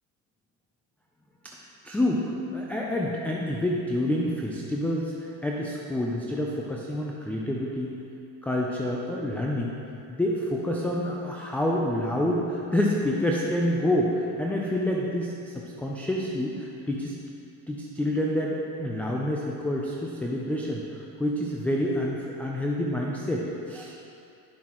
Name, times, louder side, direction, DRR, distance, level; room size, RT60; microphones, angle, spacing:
voice 1, 1.8-7.9 8.4-9.7 10.1-17.2 17.7-23.9, left 1 dB, 5° left, -2 dB, 0.3 m, -28 dB
9.7 x 7.2 x 3.0 m, 2.6 s
supercardioid pair, 115°, 46 cm